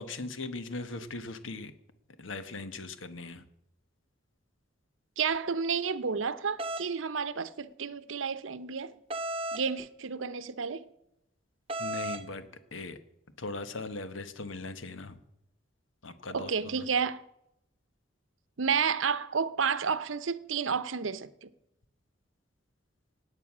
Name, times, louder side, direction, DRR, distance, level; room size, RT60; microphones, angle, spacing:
voice 1, 0.0-1.7 2.2-3.4 11.8-12.5 12.7-13.0 13.4-15.2 16.0-16.9, left 3 dB, 85° left, 1.1 m, -39 dB
voice 2, 5.2-8.9 9.5-10.9 16.3-17.2 18.6-21.5, right 6 dB, 90° right, 0.7 m, -31 dB
sound 1, 6.6-6.9 9.1-9.7 11.7-12.2, right 1 dB, 30° right, 0.6 m, -34 dB
17.0 x 9.0 x 6.1 m
head